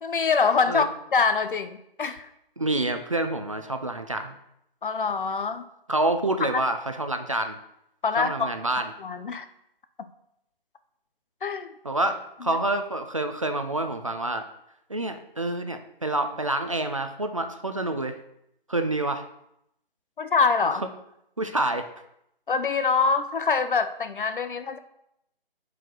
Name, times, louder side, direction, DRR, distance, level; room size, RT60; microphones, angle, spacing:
voice 1, 0.0-2.3 4.8-5.7 6.5-6.6 8.0-8.5 9.0-9.5 11.4-11.7 12.5-12.6 20.2-20.8 22.5-24.8, left 5 dB, 60° left, 11 dB, 0.7 m, -25 dB
voice 2, 2.6-4.4 5.9-7.6 8.2-8.9 11.8-14.5 14.9-18.2 18.7-19.2 20.7-20.8 21.4-21.9, right 2 dB, 35° right, 7 dB, 0.4 m, -27 dB
9.1 x 4.7 x 3.9 m, 0.79 s
hypercardioid pair, 165°, 29 cm